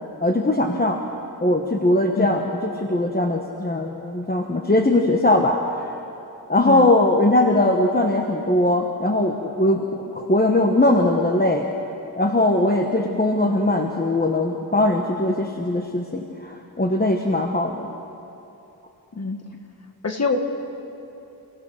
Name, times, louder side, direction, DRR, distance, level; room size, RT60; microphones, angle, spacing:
voice 1, 0.2-1.0 1.4-6.0 6.5-11.7 12.2-18.0, left 1 dB, 25° left, 2 dB, 1.2 m, -20 dB
voice 2, 2.1-2.5 6.6-6.9 13.0-13.2 19.1-19.4 20.0-20.4, left 4 dB, 40° left, 5 dB, 1.7 m, -26 dB
29.0 x 17.5 x 6.4 m, 2.9 s
wide cardioid pair, 120°, 41 cm